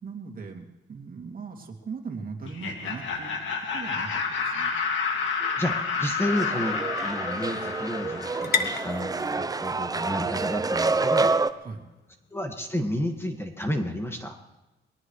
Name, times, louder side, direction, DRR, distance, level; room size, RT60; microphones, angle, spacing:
voice 1, 0.0-4.7 11.6-11.9, right 5 dB, 45° right, 2 dB, 2.7 m, -39 dB
Laughter, 2.4-9.2, left 5 dB, 70° left, 2.4 m, -30 dB
sound 1, 4.9-12.8, left 5 dB, 55° left, 1.4 m, -37 dB
voice 2, 5.4-11.4 12.3-14.4, left 1 dB, 10° left, 4 dB, 1.8 m, -31 dB
sound 2, 6.3-11.5, right 3 dB, 20° right, 0.7 m, -27 dB
22.5 x 18.0 x 3.2 m, 1.0 s
cardioid pair, 90°, 20 cm